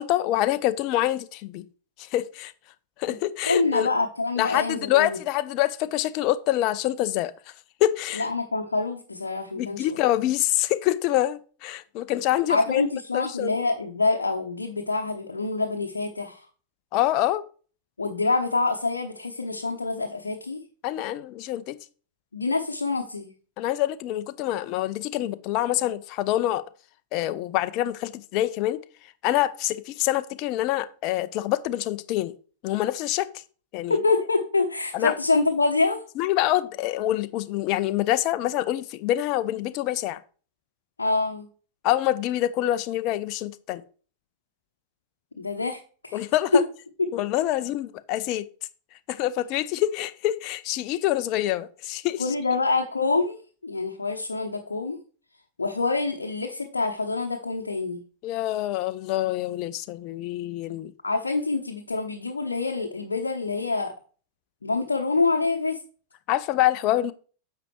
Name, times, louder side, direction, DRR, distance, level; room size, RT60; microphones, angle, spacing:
voice 1, 0.0-1.6 2.0-2.5 3.0-3.9 4.4-7.3 7.8-8.3 9.6-12.8 13.1-13.5 16.9-17.4 20.8-21.8 23.6-26.6 27.1-28.8 29.2-32.3 32.6-33.3 33.7-34.0 34.9-35.2 36.2-40.2 41.8-43.8 46.1-46.6 47.1-48.5 49.1-52.3 58.2-60.9 66.3-67.1, left 14 dB, 40° left, 0.6 m, -26 dB
voice 2, 3.4-5.2 8.1-10.0 12.5-16.5 18.0-20.6 22.3-23.3 34.0-36.0 41.0-41.5 45.4-46.2 46.5-46.6 47.0-47.1 52.2-53.4 53.6-55.0 55.6-58.0 61.0-63.9 64.6-65.8, left 3 dB, 75° left, 0.9 m, -26 dB
9.9 x 6.9 x 3.2 m
figure-of-eight pair, 90°, 0 cm